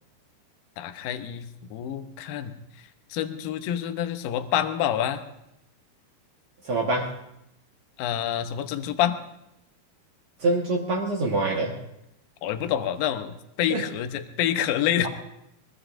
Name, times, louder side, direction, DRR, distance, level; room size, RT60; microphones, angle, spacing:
voice 1, 0.8-2.5 3.1-5.2 8.0-9.2 12.4-15.1, left 10 dB, 80° left, 8 dB, 2.1 m, -27 dB
voice 2, 6.7-7.1 10.4-11.7 13.7-13.8, right 2 dB, 90° right, -3 dB, 1.2 m, -25 dB
23.0 x 22.5 x 2.6 m, 0.83 s
omnidirectional pair, 5.1 m